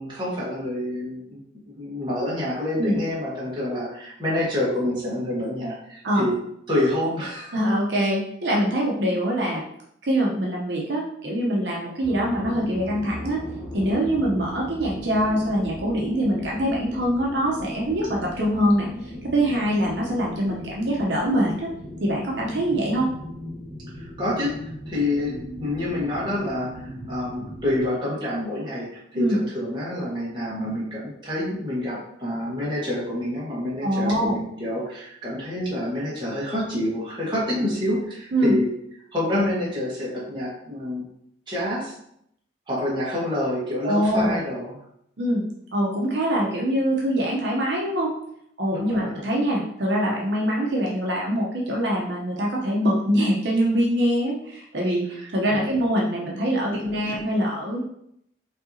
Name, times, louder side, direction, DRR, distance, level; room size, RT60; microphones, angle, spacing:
voice 1, 0.0-1.4 1.7-6.3 6.7-7.5 22.6-22.8 24.0-38.7 39.1-41.0 41.5-41.9 42.7-44.7 48.7-49.3 55.2-55.6 57.1-57.2, left 1 dB, 25° right, -6 dB, 1.3 m, -28 dB
voice 2, 7.5-9.6 10.0-13.4 13.7-21.7 22.0-23.1 29.1-29.4 33.8-34.4 38.3-38.6 43.8-44.4 45.2-45.4 45.7-48.1 48.6-55.0 55.3-57.8, equal, 65° right, -3 dB, 0.8 m, -24 dB
sound 1, 12.0-27.9, equal, ahead, 1.6 m, -37 dB
5.3 x 2.8 x 2.7 m, 0.73 s
head